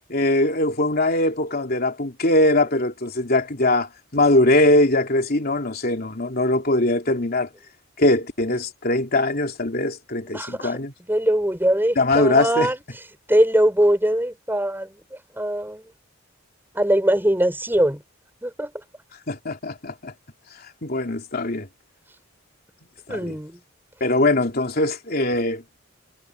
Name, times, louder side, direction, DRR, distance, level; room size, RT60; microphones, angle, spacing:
voice 1, 0.0-7.5 8.0-10.9 11.9-12.7 19.3-20.1 20.6-21.7 23.1-23.4 24.0-25.6, left 2 dB, 50° left, 3.2 m, -21 dB
voice 2, 10.3-10.7 11.1-12.8 13.3-14.9 15.3-15.8 16.7-18.0 18.4-18.7 23.1-23.6, right 1 dB, 10° right, 5.0 m, -21 dB
head